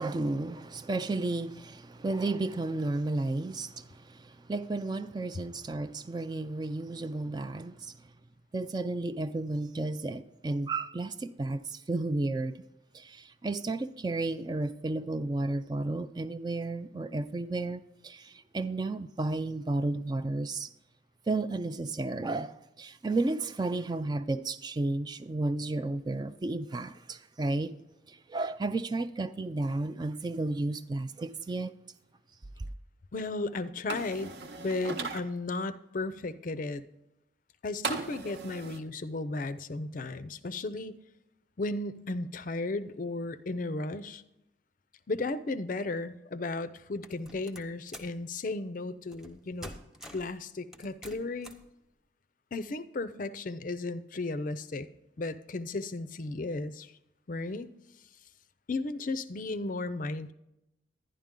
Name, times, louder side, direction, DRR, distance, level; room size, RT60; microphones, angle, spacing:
voice 1, 0.0-8.0 8.5-12.6 12.9-20.7 21.3-27.8 28.1-31.7, right 2 dB, 20° right, 0.3 m, -33 dB
voice 2, 33.1-34.3 34.6-36.8 37.6-41.0 41.6-44.2 45.1-49.7 50.1-51.5 52.5-54.9 55.2-56.9 57.3-57.7 58.7-60.3, left 2 dB, 45° left, 0.5 m, -35 dB
sound 1, 33.9-35.2 37.8-38.8, right 4 dB, 55° right, 0.9 m, -37 dB
sound 2, 47.0-48.2 49.1-49.3 49.6-50.3 50.7-51.7, equal, 5° right, 0.8 m, -47 dB
11.0 x 10.5 x 3.7 m
head